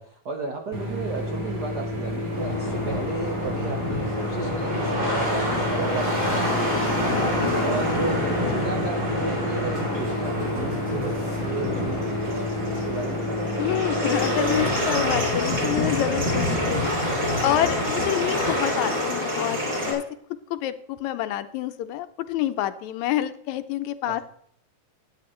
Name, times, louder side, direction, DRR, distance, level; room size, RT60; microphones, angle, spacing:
voice 1, 0.0-7.3 7.6-13.6 24.1-24.2, right 4 dB, 75° right, 2 dB, 0.9 m, -34 dB
sound 1, 0.7-14.7, left 1 dB, 20° right, 1.8 m, -30 dB
sound 2, 2.3-19.9, left 1 dB, 35° right, 4.4 m, -26 dB
voice 2, 13.6-16.9 17.4-20.0 20.5-24.2, left 12 dB, 80° left, 11 dB, 1.9 m, -27 dB
11.5 x 9.5 x 3.1 m, 0.67 s
omnidirectional pair, 3.4 m